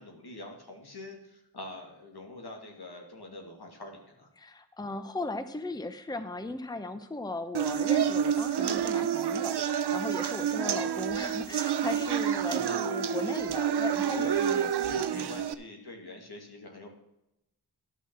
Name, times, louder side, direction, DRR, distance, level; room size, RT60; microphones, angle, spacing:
voice 1, 0.0-4.3 12.5-12.8 14.1-16.9, left 1 dB, 70° left, 2 dB, 2.4 m, -45 dB
voice 2, 4.4-14.7 15.0-15.4, left 2 dB, 10° left, 10 dB, 0.8 m, -37 dB
sound 1, 7.5-15.5, right 8 dB, 80° right, 0.6 m, -28 dB
11.5 x 6.2 x 6.1 m, 0.87 s
cardioid pair, 45°, 40 cm